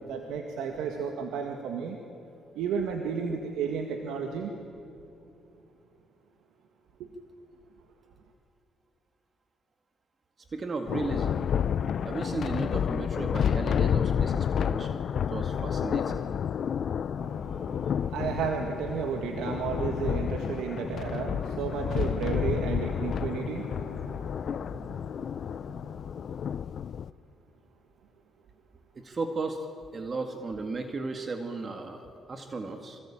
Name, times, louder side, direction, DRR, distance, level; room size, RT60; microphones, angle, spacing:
voice 1, 0.1-2.0 2.6-4.6 7.0-7.1 15.5-15.6 16.1-16.7 17.2-25.0 25.4-25.5, right 6 dB, 90° right, 4 dB, 2.0 m, -33 dB
voice 2, 10.5-11.5 12.0-16.2 29.0-29.7 29.9-33.0, right 3 dB, 35° right, 5 dB, 2.0 m, -35 dB
Thunder, 10.9-27.1, left 8 dB, 60° left, 0.6 m, -30 dB
26.0 x 25.5 x 8.8 m, 2.8 s
cardioid pair, 90°, 0 cm